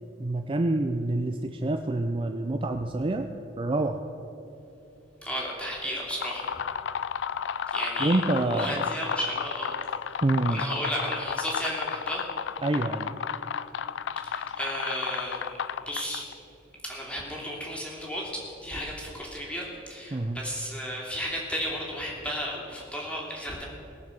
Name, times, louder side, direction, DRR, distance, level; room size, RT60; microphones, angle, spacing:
voice 1, 0.2-3.3 3.6-4.0 8.0-8.8 10.2-10.6 12.6-13.1 20.1-20.4, right 2 dB, 30° right, 6 dB, 0.5 m, -27 dB
voice 2, 5.2-6.5 7.7-9.7 10.5-12.2 14.2-15.4 15.8-16.3 16.8-23.7, equal, 5° left, -3 dB, 2.9 m, -33 dB
sound 1, 6.0-16.3, left 7 dB, 75° left, 0.4 m, -33 dB
19.5 x 6.7 x 6.9 m, 2.8 s
head